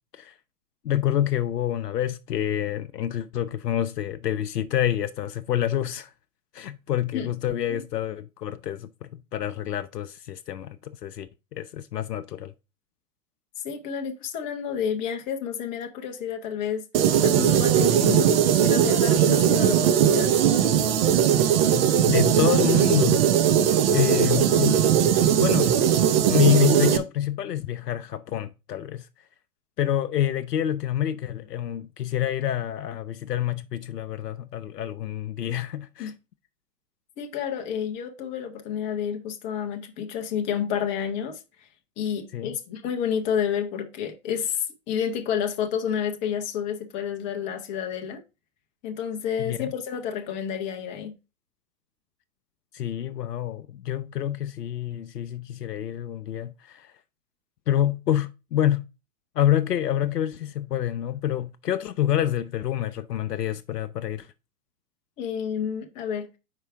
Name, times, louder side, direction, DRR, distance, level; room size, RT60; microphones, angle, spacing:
voice 1, 0.8-6.1 6.5-12.5 22.1-23.3 23.9-24.8 25.1-25.7 26.3-29.1 29.8-36.1 42.3-42.5 49.4-49.7 52.7-56.9 57.7-58.8 59.4-64.3, left 11 dB, 85° left, 0.6 m, -27 dB
voice 2, 13.6-16.8 17.2-20.4 36.0-36.1 37.2-41.7 42.0-48.2 48.8-51.2 65.2-66.3, left 8 dB, 15° left, 0.5 m, -30 dB
sound 1, 16.9-27.0, right 9 dB, 40° right, 0.7 m, -19 dB
4.8 x 4.4 x 4.6 m
figure-of-eight pair, 115°, 47 cm